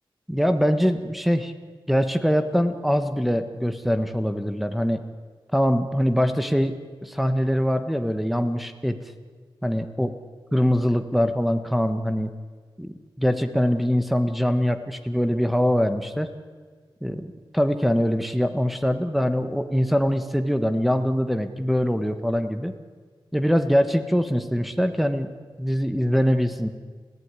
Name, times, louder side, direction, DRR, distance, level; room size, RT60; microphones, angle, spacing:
voice 1, 0.3-1.5 1.9-5.0 5.5-6.7 7.0-9.0 9.6-10.1 10.5-12.3 12.8-16.3 17.0-22.7 23.3-25.3 25.6-26.7, equal, ahead, 7 dB, 1.3 m, -23 dB
30.0 x 15.5 x 9.7 m, 1.5 s
wide cardioid pair, 155°, 9 cm